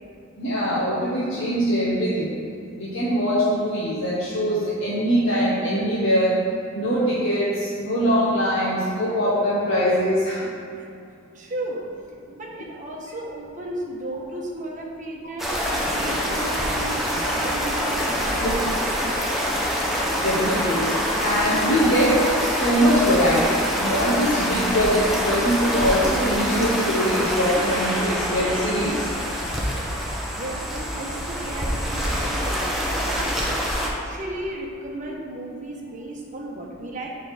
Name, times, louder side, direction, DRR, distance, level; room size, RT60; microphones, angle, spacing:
voice 1, 0.4-2.3 2.8-6.3 6.7-10.5 18.4-18.5 20.2-20.9 21.2-29.1, equal, 80° left, -10 dB, 1.5 m, -22 dB
voice 2, 11.3-11.9 12.3-15.5 15.9-18.9 30.3-32.7 33.1-33.5 33.8-37.1, right 1 dB, 40° right, -2 dB, 1.2 m, -34 dB
sound 1, 15.4-33.9, equal, ahead, 1.0 m, -25 dB
6.8 x 5.6 x 4.9 m, 2.5 s
head